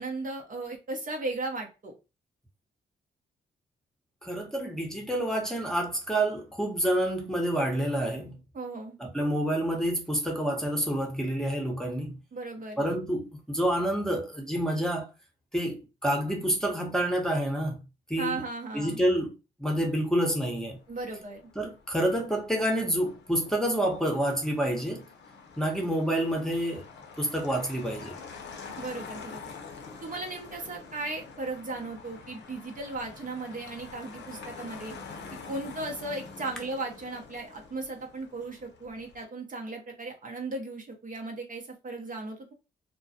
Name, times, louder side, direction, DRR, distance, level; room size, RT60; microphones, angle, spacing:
voice 1, 0.0-1.9 8.5-9.0 12.3-12.8 18.2-19.0 20.9-21.4 28.8-29.4 30.0-35.0 35.5-42.5, right 2 dB, 40° right, 0.7 m, -36 dB
voice 2, 4.2-8.4 9.0-12.2 12.8-15.1 15.5-17.8 18.1-18.4 18.7-19.3 19.6-20.8 21.6-25.0 25.6-26.9 27.2-28.1, right 1 dB, 5° left, 0.9 m, -28 dB
Motor vehicle (road), 20.5-39.2, left 5 dB, 60° left, 0.6 m, -47 dB
2.2 x 2.1 x 2.7 m
supercardioid pair, 50°, 20 cm